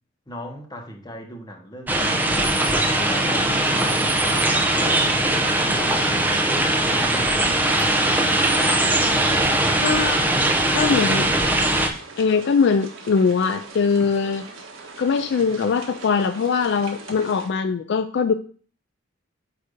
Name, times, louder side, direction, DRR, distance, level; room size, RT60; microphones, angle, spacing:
voice 1, 0.3-2.4 2.7-4.4 4.7-8.5, equal, 20° left, 2 dB, 1.0 m, -37 dB
sound 1, 1.9-11.9, right 1 dB, 10° right, 0.6 m, -20 dB
voice 2, 9.8-10.2 10.7-11.3 12.2-14.4 15.0-18.3, left 5 dB, 60° left, 10 dB, 0.3 m, -21 dB
sound 2, 11.4-17.5, right 3 dB, 75° right, 1.2 m, -41 dB
8.2 x 2.7 x 5.1 m, 0.43 s
head